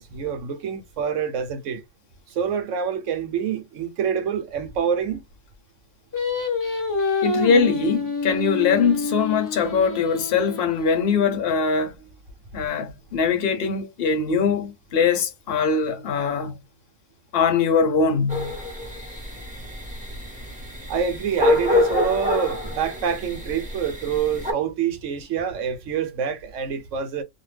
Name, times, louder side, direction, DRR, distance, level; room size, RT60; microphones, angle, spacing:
voice 1, 0.0-1.8 2.3-5.2 20.9-27.2, right 7 dB, 70° right, 1.0 m, -26 dB
Singing, 6.1-11.4, left 3 dB, 20° left, 0.5 m, -27 dB
voice 2, 7.2-11.9 12.5-16.6 17.3-18.5, left 5 dB, 50° left, 0.9 m, -22 dB
sound 1, 18.3-24.5, left 1 dB, 5° right, 0.9 m, -26 dB
2.5 x 2.2 x 3.2 m
omnidirectional pair, 1.4 m